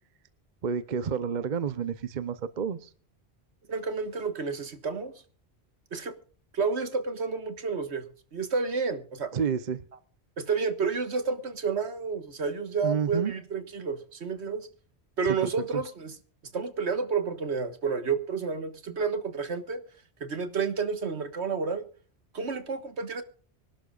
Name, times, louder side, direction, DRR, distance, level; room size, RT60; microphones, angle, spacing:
voice 1, 0.6-2.9 9.3-9.8 12.8-13.3 15.2-15.4, right 6 dB, 45° right, 0.9 m, -29 dB
voice 2, 3.7-5.1 5.9-6.1 6.5-8.0 8.3-9.3 10.4-14.7 15.2-16.1 16.5-19.8 20.2-21.8 22.3-23.2, right 5 dB, 75° right, 1.7 m, -30 dB
25.0 x 12.0 x 2.4 m
omnidirectional pair, 1.1 m